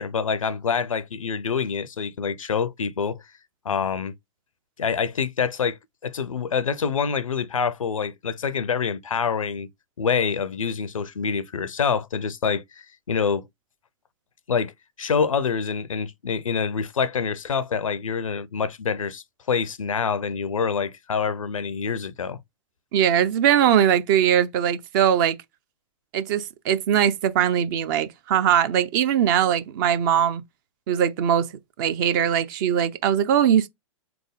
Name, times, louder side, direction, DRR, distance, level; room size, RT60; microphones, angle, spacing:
voice 1, 0.0-3.2 3.6-4.1 4.8-9.7 10.0-13.4 14.5-14.7 15.0-22.4, left 6 dB, 75° left, 0.5 m, -26 dB
voice 2, 22.9-25.4 26.1-30.4 30.9-31.5 31.8-33.7, right 9 dB, 40° right, 0.5 m, -21 dB
3.8 x 3.5 x 3.4 m
figure-of-eight pair, 110°, 17 cm